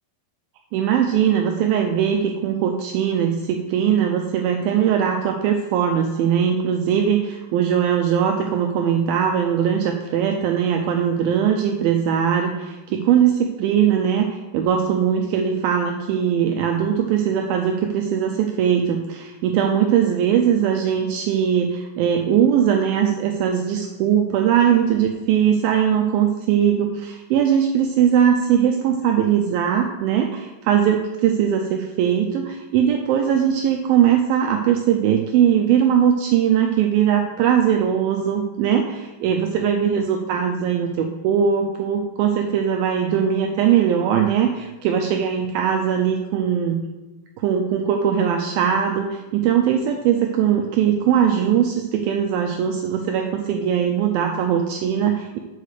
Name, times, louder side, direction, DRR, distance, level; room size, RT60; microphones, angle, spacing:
voice 1, 0.7-46.8 47.4-55.4, right 8 dB, 85° right, 3 dB, 2.1 m, -20 dB
6.5 x 5.3 x 6.7 m, 1.2 s
omnidirectional pair, 4.7 m